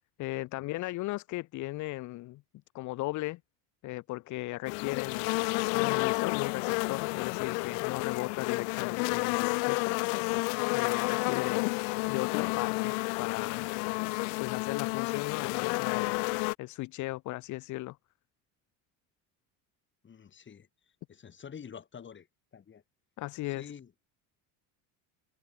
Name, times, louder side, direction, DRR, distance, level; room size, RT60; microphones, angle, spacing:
voice 1, 0.2-2.4 2.7-3.4 3.8-5.4 5.7-10.4 10.7-11.7 12.1-13.7 14.4-16.2 16.6-18.0 23.2-23.7, left 19 dB, 50° left, 0.7 m, -37 dB
sound 1, 4.7-16.5, left 40 dB or more, 85° left, 0.8 m, -30 dB
voice 2, 20.0-20.7 21.1-22.3 22.5-22.8 23.5-23.9, left 7 dB, 30° left, 5.4 m, -47 dB
cardioid pair, 130°, 38 cm